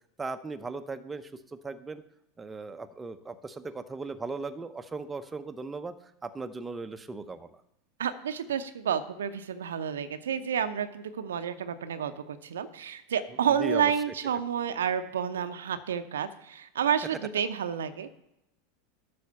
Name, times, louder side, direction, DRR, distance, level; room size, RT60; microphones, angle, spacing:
voice 1, 0.2-1.3 1.6-2.0 2.4-5.9 6.2-7.6 13.6-13.9, right 3 dB, 15° right, 9 dB, 0.8 m, -37 dB
voice 2, 8.0-18.2, right 8 dB, 75° right, 10 dB, 0.7 m, -30 dB
12.0 x 4.2 x 6.9 m, 0.84 s
figure-of-eight pair, 85°, 0 cm